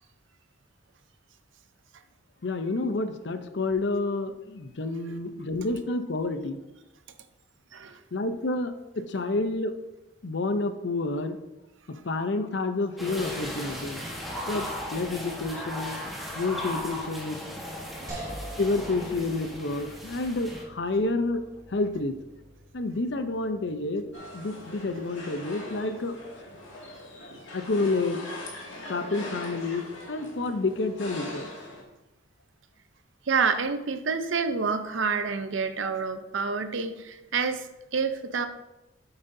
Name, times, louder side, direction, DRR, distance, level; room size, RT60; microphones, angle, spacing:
voice 1, 2.4-6.6 8.1-9.7 10.2-11.4 11.9-14.0 14.5-16.0 16.3-17.4 18.6-22.1 22.7-26.2 27.5-28.2 28.9-31.5, left 2 dB, 60° left, 9 dB, 0.6 m, -29 dB
sound 1, 13.0-20.6, left 1 dB, ahead, 1.3 m, -37 dB
sound 2, 18.1-31.2, right 1 dB, 20° right, 2.3 m, -47 dB
sound 3, 24.1-31.8, left 2 dB, 80° left, 2.0 m, -41 dB
voice 2, 33.3-38.5, right 5 dB, 80° right, 9 dB, 0.7 m, -28 dB
8.9 x 8.0 x 2.7 m, 1.0 s
head